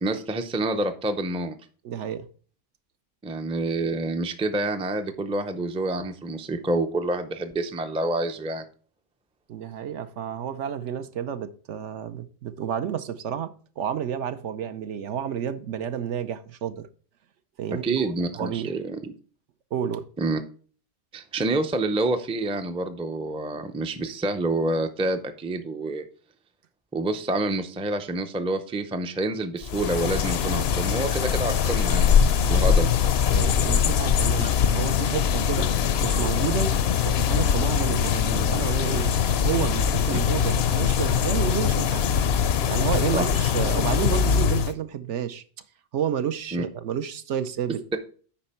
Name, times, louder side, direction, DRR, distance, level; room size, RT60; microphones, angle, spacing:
voice 1, 0.0-1.6 3.2-8.6 17.8-19.1 20.2-20.4 21.1-26.0 26.9-32.2 32.5-32.9 34.4-34.5 43.1-43.3 46.5-46.6, right 2 dB, 10° right, 0.4 m, -27 dB
voice 2, 1.8-2.3 9.5-16.9 17.6-18.1 18.4-18.7 19.7-20.1 33.3-35.7 36.0-36.7 37.1-39.1 39.4-42.1 42.7-45.4 45.9-47.8, right 9 dB, 70° right, 1.0 m, -30 dB
sound 1, 29.6-44.7, left 7 dB, 65° left, 0.7 m, -22 dB
8.8 x 5.2 x 4.3 m
omnidirectional pair, 1.3 m